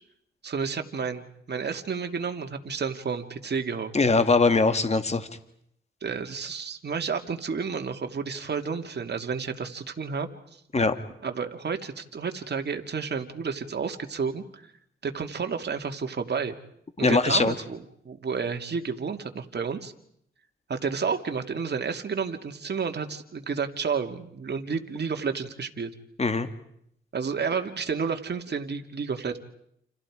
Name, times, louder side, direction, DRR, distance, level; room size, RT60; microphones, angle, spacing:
voice 1, 0.4-3.9 6.0-10.6 11.2-14.7 15.0-16.5 17.0-17.8 18.0-19.9 20.7-25.9 27.1-29.4, right 5 dB, 55° right, 5 dB, 2.5 m, -31 dB
voice 2, 3.9-5.3 10.7-10.9 17.0-17.5 26.2-26.5, left 3 dB, 30° left, 9 dB, 2.1 m, -21 dB
29.5 x 29.0 x 5.0 m, 0.71 s
cardioid pair, 70°, 21 cm